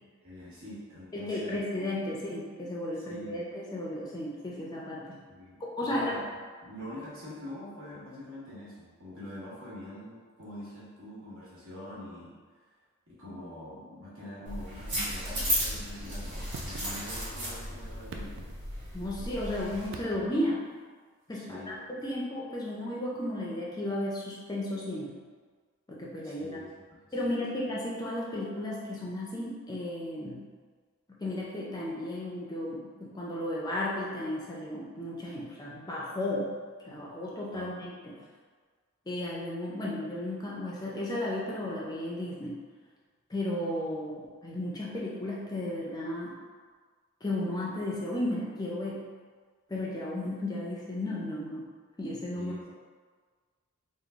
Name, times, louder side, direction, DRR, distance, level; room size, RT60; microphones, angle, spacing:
voice 1, 0.2-1.7 3.1-3.4 5.4-6.3 6.6-12.4 13.1-18.4 21.3-21.8 26.2-27.3 37.5-37.7 52.3-52.6, left 1 dB, 75° right, -8 dB, 1.4 m, -44 dB
voice 2, 1.1-3.4 3.7-5.2 5.8-6.1 18.9-20.7 21.3-25.2 25.9-26.6 27.1-30.5 31.2-36.6 36.9-38.2 39.1-42.6 43.3-46.3 47.2-49.1 49.7-51.7 52.0-52.5, left 1 dB, 20° left, -4 dB, 0.4 m, -34 dB
sound 1, 14.5-19.9, equal, 35° right, 1.4 m, -35 dB
sound 2, 16.5-17.4 17.9-19.1 19.9-20.6 22.1-22.2, right 3 dB, 55° right, 0.3 m, -45 dB
3.7 x 2.0 x 3.4 m, 1.5 s
head